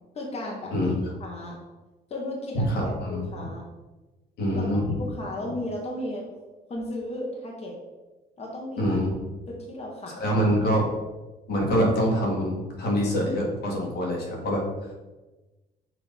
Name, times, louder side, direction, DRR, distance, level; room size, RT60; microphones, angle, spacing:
voice 1, 0.1-1.6 2.1-3.6 4.5-4.7 5.0-6.3 6.7-7.7 8.4-9.0 9.5-10.4, left 1 dB, 40° left, -2 dB, 1.3 m, -35 dB
voice 2, 2.5-3.3 4.4-4.9 5.4-5.5 8.8-9.3 10.1-10.9 11.5-14.6, equal, 70° left, -2 dB, 1.6 m, -25 dB
6.0 x 2.9 x 5.3 m, 1.1 s
cardioid pair, 110°, 17 cm